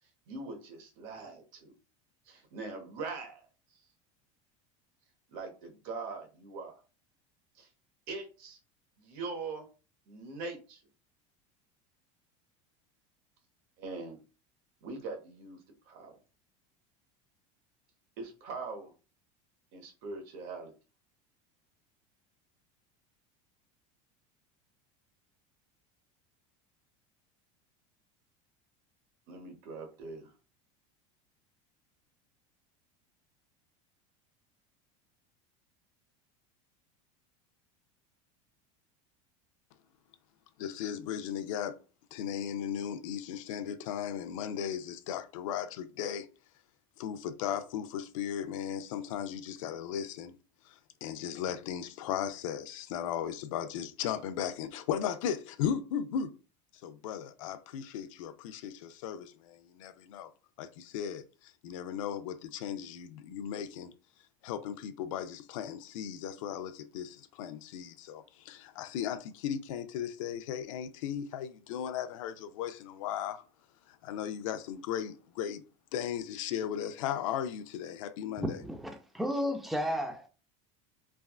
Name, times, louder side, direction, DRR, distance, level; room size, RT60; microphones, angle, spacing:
voice 1, 0.3-1.7 2.2-3.5 3.7-3.8 5.3-6.7 7.5-7.7 8.1-8.6 9.0-9.7 10.1-10.8 13.8-14.2 14.8-15.6 15.8-16.1 18.2-18.9 19.7-20.7 29.3-30.3, right 3 dB, 60° right, 1.1 m, -42 dB
voice 2, 40.6-41.7 42.1-46.3 47.0-50.3 50.7-56.3 56.8-60.3 60.6-63.9 64.4-73.4 74.0-75.6 75.9-78.6, left 9 dB, 90° left, 0.4 m, -36 dB
voice 3, 78.4-80.3, equal, ahead, 0.5 m, -33 dB
3.3 x 2.3 x 2.3 m
supercardioid pair, 135°, 16 cm